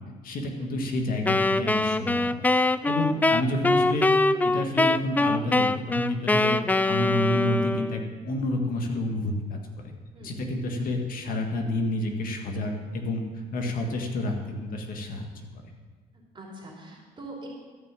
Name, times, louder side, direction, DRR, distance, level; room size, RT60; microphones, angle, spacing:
voice 1, 0.2-4.1 4.4-5.7 6.0-6.6 6.9-9.9 10.2-13.2 13.5-15.3 15.6-15.7, left 1 dB, 55° left, 2 dB, 1.9 m, -29 dB
Wind instrument woodwind instrument, 1.3-8.1, left 2 dB, 10° left, 0.3 m, -23 dB
voice 2, 10.1-10.5 10.8-10.9 16.3-17.5, right 2 dB, 30° right, -3 dB, 3.2 m, -44 dB
13.5 x 6.1 x 7.5 m, 1.4 s
cardioid pair, 110°, 17 cm